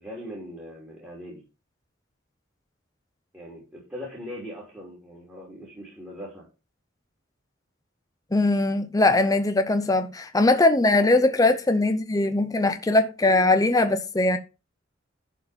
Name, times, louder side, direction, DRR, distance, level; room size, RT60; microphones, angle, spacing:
voice 1, 0.0-1.4 3.3-6.5, equal, 10° right, 3.3 m, -40 dB
voice 2, 8.3-14.4, left 2 dB, 20° left, 0.6 m, -21 dB
11.5 x 4.6 x 5.1 m
head